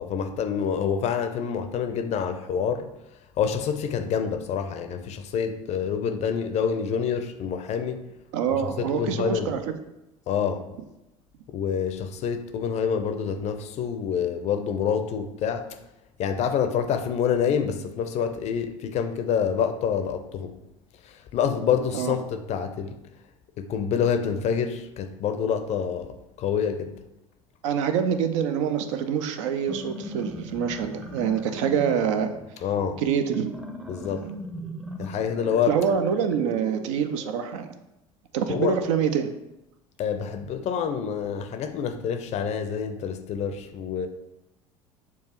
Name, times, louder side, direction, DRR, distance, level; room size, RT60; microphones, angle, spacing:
voice 1, 0.0-2.9 3.4-8.0 8.8-9.5 10.3-10.7 11.5-15.8 16.2-20.6 21.0-23.0 23.6-27.0 32.6-33.0 33.9-34.3 35.0-35.8 38.5-38.8 40.0-44.1, left 7 dB, 40° left, 0.5 m, -27 dB
voice 2, 8.3-9.6 21.9-22.2 27.6-32.3 33.0-33.5 35.7-37.7 38.3-39.3, right 7 dB, 60° right, 0.5 m, -25 dB
sound 1, 29.5-37.3, equal, 5° right, 0.6 m, -39 dB
6.9 x 2.3 x 2.9 m
figure-of-eight pair, 65°, 18 cm